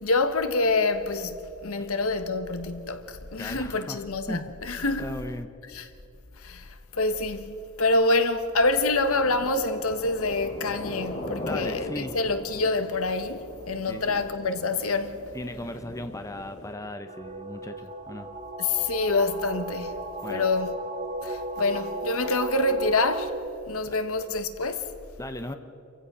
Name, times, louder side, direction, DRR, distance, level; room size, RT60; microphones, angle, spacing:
voice 1, 0.0-5.1 5.7-5.8 6.4-15.2 18.6-20.0 20.3-20.7 21.2-23.3 23.7-24.8, left 3 dB, 70° left, 1.4 m, -26 dB
voice 2, 3.4-4.5 5.0-5.5 11.4-12.2 13.9-14.2 15.3-18.3 20.2-20.5 23.8-24.0 25.2-25.5, left 1 dB, 15° left, 0.8 m, -37 dB
sound 1, 9.1-16.7, left 1 dB, 35° left, 2.7 m, -39 dB
sound 2, 17.0-23.3, right 1 dB, 35° right, 1.7 m, -35 dB
28.0 x 15.5 x 6.2 m
head